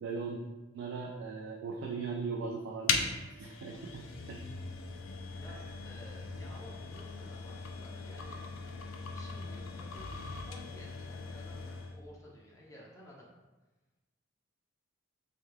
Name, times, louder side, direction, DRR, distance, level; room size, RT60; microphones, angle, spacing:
voice 1, 0.0-0.4 0.7-3.1 3.4-4.4, right 4 dB, 60° right, -1 dB, 0.3 m, -38 dB
sound 1, 2.9-12.0, left 4 dB, 70° left, 0.4 m, -39 dB
voice 2, 5.3-8.4 9.1-13.3, left 1 dB, 15° left, -4 dB, 0.6 m, -54 dB
3.3 x 2.2 x 3.2 m, 1.1 s
head